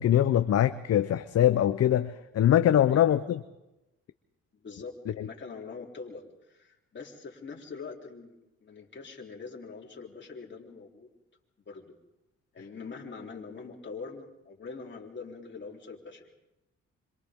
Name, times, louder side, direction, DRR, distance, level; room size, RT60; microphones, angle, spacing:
voice 1, 0.0-3.4 5.2-5.3, left 11 dB, 55° left, 11 dB, 0.8 m, -23 dB
voice 2, 2.8-3.1 4.5-11.1 11.7-11.9 12.5-16.2, left 4 dB, 35° left, 0 dB, 3.6 m, -43 dB
26.5 x 26.5 x 3.7 m, 0.98 s
cardioid pair, 90°, 30 cm